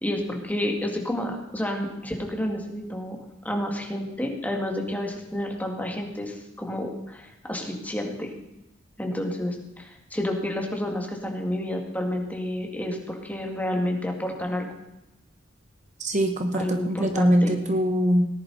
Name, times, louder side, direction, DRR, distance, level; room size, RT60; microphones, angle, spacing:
voice 1, 0.0-3.2 3.4-8.3 9.0-14.7 16.6-17.6, left 1 dB, 10° left, 1 dB, 2.1 m, -30 dB
voice 2, 16.0-18.3, equal, 40° right, 6 dB, 1.1 m, -22 dB
18.0 x 10.5 x 4.2 m, 0.91 s
head